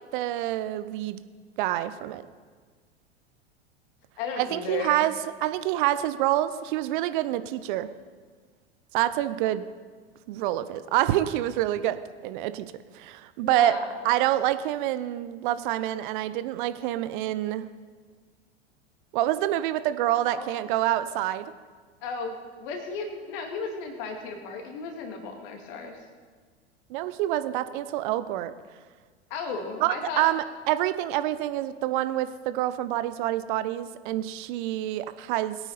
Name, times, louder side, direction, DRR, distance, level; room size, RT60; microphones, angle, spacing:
voice 1, 0.1-1.2 1.6-2.2 4.4-5.1 5.4-7.9 8.9-9.6 10.3-12.7 12.9-13.8 14.0-17.6 19.1-21.5 26.9-28.5 29.8-35.6, right 14 dB, 50° right, 13 dB, 0.8 m, -27 dB
voice 2, 4.2-5.1 13.4-14.0 20.3-20.5 22.0-26.0 29.3-30.3, left 4 dB, 50° left, 4 dB, 2.4 m, -35 dB
21.0 x 9.0 x 4.1 m, 1.6 s
figure-of-eight pair, 85°, 34 cm